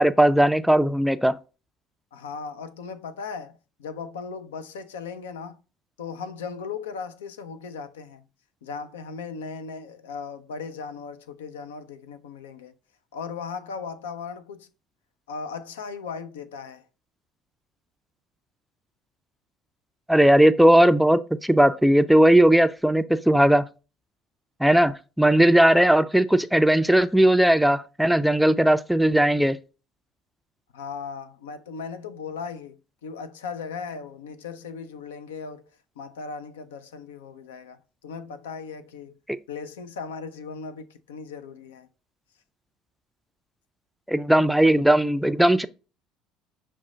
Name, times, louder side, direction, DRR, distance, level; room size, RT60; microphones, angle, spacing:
voice 1, 0.0-1.3 20.1-23.7 24.6-29.6 44.1-45.7, right 1 dB, ahead, 0.3 m, -18 dB
voice 2, 2.1-5.6 6.0-8.2 8.6-12.7 13.1-14.7 15.3-16.8 30.7-35.6 36.0-39.1 39.5-41.9, left 5 dB, 80° left, 0.4 m, -37 dB
6.0 x 2.1 x 3.7 m
hypercardioid pair, 65°, 0 cm